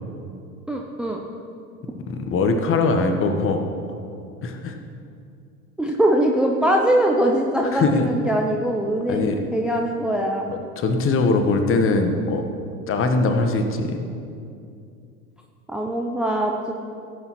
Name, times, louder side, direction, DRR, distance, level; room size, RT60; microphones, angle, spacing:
voice 1, 0.7-1.2 5.8-9.2 9.5-10.5 15.7-16.7, right 1 dB, ahead, 1 dB, 0.5 m, -22 dB
voice 2, 2.1-3.6 4.4-4.7 7.7-8.1 9.1-9.4 10.5-12.4 12.9-14.1, left 3 dB, 30° left, 5 dB, 1.1 m, -21 dB
16.0 x 8.2 x 3.1 m, 2.5 s
figure-of-eight pair, 80°, 44 cm